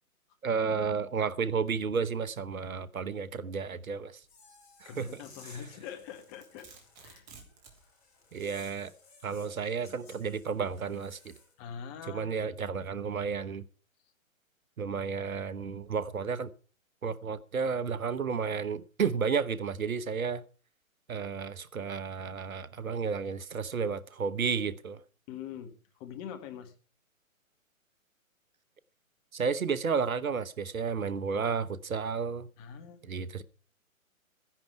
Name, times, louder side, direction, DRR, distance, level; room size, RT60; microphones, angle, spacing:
voice 1, 0.4-4.2 4.8-5.2 8.3-8.9 9.2-11.3 12.1-13.6 14.8-16.5 17.0-20.4 21.1-25.0 29.3-32.5 33.1-33.4, right 5 dB, 75° right, 1.1 m, -32 dB
sound 1, 4.2-11.5, left 4 dB, 50° left, 7.3 m, -57 dB
voice 2, 4.8-6.7 7.0-7.3 11.6-12.6 25.3-26.7 32.6-33.1, left 8 dB, 25° left, 1.6 m, -44 dB
Domestic sounds home sounds, 5.9-7.8, right 4 dB, 30° right, 3.2 m, -53 dB
14.5 x 10.5 x 4.6 m
figure-of-eight pair, 130°, 42 cm